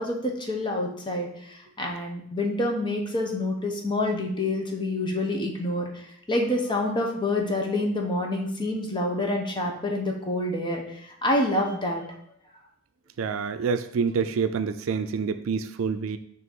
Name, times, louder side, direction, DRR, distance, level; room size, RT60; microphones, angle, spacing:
voice 1, 0.0-12.0, left 1 dB, 25° left, 1 dB, 1.0 m, -27 dB
voice 2, 13.2-16.2, right 5 dB, 85° right, 10 dB, 0.4 m, -27 dB
6.2 x 3.0 x 5.3 m, 0.67 s
head